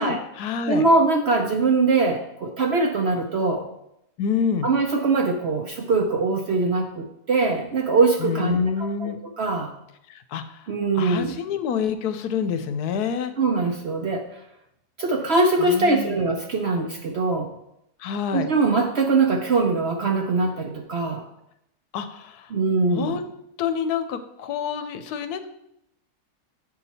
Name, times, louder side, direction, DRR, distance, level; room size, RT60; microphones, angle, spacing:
voice 1, 0.0-0.8 4.2-4.7 8.2-9.2 10.1-10.7 10.9-13.3 15.6-16.2 18.0-18.5 21.9-22.5 23.0-23.3 23.6-25.5, left 7 dB, 80° left, 10 dB, 1.1 m, -27 dB
voice 2, 0.7-3.7 4.6-9.7 10.7-11.3 13.4-14.4 15.0-17.5 18.3-21.2 22.5-23.2, right 3 dB, 60° right, 3 dB, 0.7 m, -22 dB
7.8 x 5.7 x 4.1 m, 0.81 s
omnidirectional pair, 1.7 m